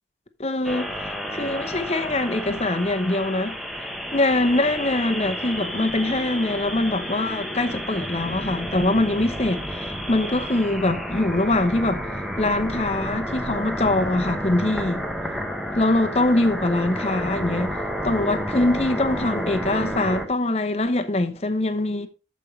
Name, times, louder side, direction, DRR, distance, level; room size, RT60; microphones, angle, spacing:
voice 1, 0.4-0.9 1.3-3.5 4.1-12.1 12.4-15.0 15.7-17.8 18.0-22.1, left 2 dB, 35° left, 0.9 m, -23 dB
sound 1, 0.6-20.3, equal, ahead, 1.0 m, -30 dB
14.0 x 5.3 x 3.2 m
head